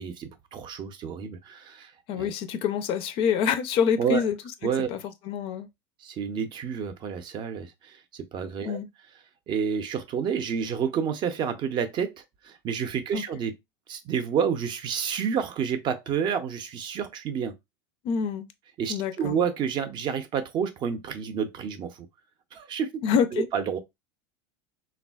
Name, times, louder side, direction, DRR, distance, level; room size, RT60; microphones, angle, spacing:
voice 1, 0.0-1.9 2.2-2.3 4.0-4.2 4.6-4.9 6.0-8.8 9.5-13.6 13.9-17.6 18.8-22.1 22.5-23.0 23.3-23.8, right 7 dB, 35° right, 0.5 m, -29 dB
voice 2, 2.1-4.4 4.9-5.7 8.7-8.9 13.1-13.2 18.0-18.5 18.9-19.4 23.0-23.5, left 7 dB, 45° left, 0.4 m, -26 dB
3.3 x 2.3 x 2.2 m
supercardioid pair, 125°, 13 cm